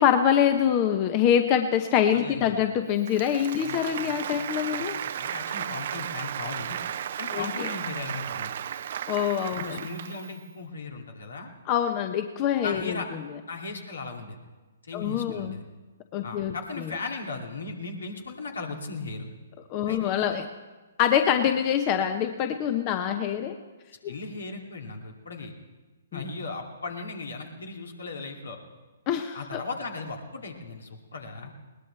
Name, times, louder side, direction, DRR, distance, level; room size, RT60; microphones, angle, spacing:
voice 1, 0.0-5.0 7.3-7.7 9.1-9.8 11.7-13.0 14.9-15.6 16.1-16.5 19.7-20.5 21.0-23.6 24.0-24.1 26.1-26.2 29.1-29.6, left 9 dB, 30° left, 7 dB, 0.9 m, -25 dB
voice 2, 2.1-2.6 3.6-4.9 5.2-6.8 7.2-8.5 9.5-11.5 12.6-13.1 13.5-14.4 14.8-15.6 16.2-19.3 19.8-20.4 24.1-25.5 26.1-28.6 29.3-31.5, left 3 dB, 75° left, 2 dB, 2.4 m, -37 dB
Applause, 3.0-10.4, right 9 dB, 55° right, 0.6 m, -34 dB
20.5 x 19.0 x 3.4 m, 1.2 s
figure-of-eight pair, 130°, 0 cm